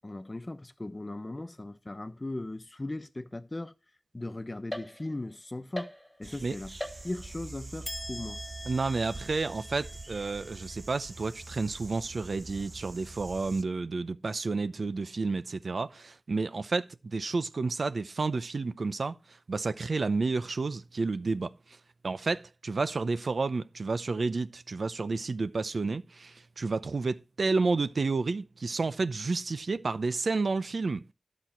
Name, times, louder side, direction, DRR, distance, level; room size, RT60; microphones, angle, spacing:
voice 1, 0.0-3.7 4.1-5.9 6.2-6.8 7.0-8.4, left 2 dB, 35° left, 0.9 m, -38 dB
sound 1, 4.7-5.4 5.7-6.4 6.8-7.5 7.8-11.3, left 1 dB, 5° left, 2.3 m, -43 dB
sound 2, 6.2-13.6, right 3 dB, 45° right, 0.9 m, -45 dB
voice 2, 8.7-19.1 19.5-21.5 22.0-31.0, right 3 dB, 85° right, 0.7 m, -30 dB
11.5 x 6.3 x 4.3 m
wide cardioid pair, 55°, 0 cm